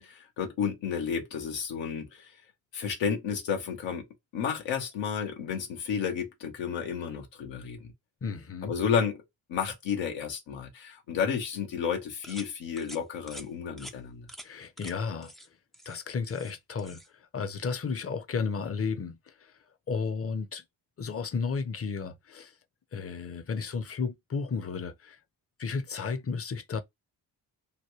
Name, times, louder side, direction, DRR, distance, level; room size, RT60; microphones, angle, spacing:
voice 1, 0.0-2.4 2.7-4.0 4.3-7.9 8.6-9.2 9.5-14.3, left 7 dB, 85° left, 1.0 m, -32 dB
voice 2, 8.2-8.7 14.4-15.3 15.9-17.0 17.3-19.5 19.9-20.6 21.0-22.5 22.9-25.2 25.6-26.8, left 5 dB, 30° left, 0.7 m, -33 dB
sound 1, 12.2-12.5 12.8-13.0 13.3-13.5 13.8-13.9 14.3-14.5 14.8-14.9 15.2-15.5 15.7-16.5 16.8-17.1, equal, ahead, 0.4 m, -46 dB
3.1 x 2.2 x 3.1 m
supercardioid pair, 50°, 44 cm